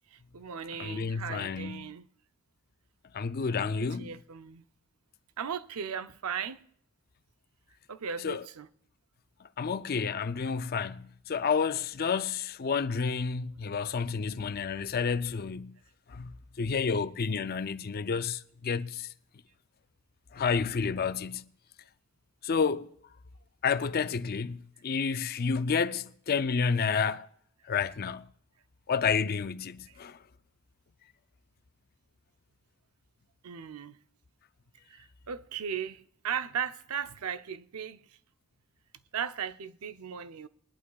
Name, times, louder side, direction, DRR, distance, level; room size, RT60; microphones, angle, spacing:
voice 1, 0.1-2.1 3.4-4.6 5.4-6.7 7.9-8.7 29.9-30.0 33.4-34.0 34.9-38.0 39.1-40.5, right 7 dB, 90° right, 0.6 m, -37 dB
voice 2, 0.8-1.9 3.1-4.2 8.2-8.4 9.6-15.8 16.1-19.1 20.3-21.5 22.4-22.9 23.6-27.3 27.7-28.3 28.9-30.2, left 5 dB, 45° left, 0.4 m, -30 dB
21.5 x 11.5 x 2.3 m
head